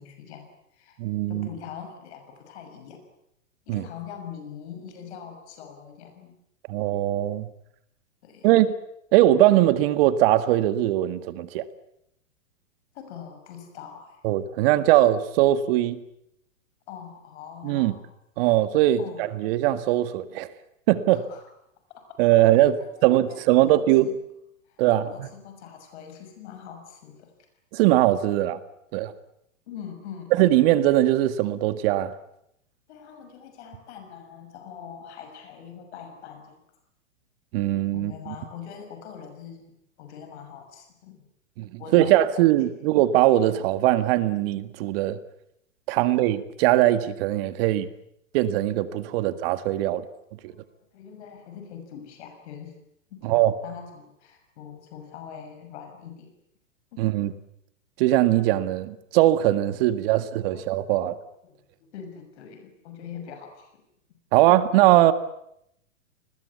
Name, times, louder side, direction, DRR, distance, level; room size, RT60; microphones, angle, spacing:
voice 1, 0.0-1.0 1.3-3.0 3.7-6.3 8.2-8.6 12.9-14.2 16.9-18.1 19.0-19.2 21.1-21.5 21.9-22.2 22.5-24.2 24.6-27.3 29.7-30.4 32.9-36.6 37.9-39.7 40.0-41.2 41.8-42.1 49.0-49.3 50.5-52.7 53.1-56.3 56.9-57.1 59.9-60.2 60.5-60.7 61.4-63.8, left 8 dB, 55° left, 6.4 m, -43 dB
voice 2, 1.0-1.5 3.7-3.9 6.7-7.5 8.4-8.7 9.1-11.6 14.2-16.0 17.6-17.9 18.4-19.0 19.4-20.5 20.9-21.2 22.2-22.8 23.0-24.1 24.8-25.3 27.7-28.6 28.9-29.1 30.4-32.1 37.5-38.3 41.6-45.2 45.9-47.9 48.3-50.1 50.4-50.5 53.2-53.5 57.0-57.3 58.0-61.2 64.3-65.1, right 14 dB, 45° right, 1.9 m, -21 dB
29.5 x 21.0 x 8.4 m
hypercardioid pair, 115°, 40 cm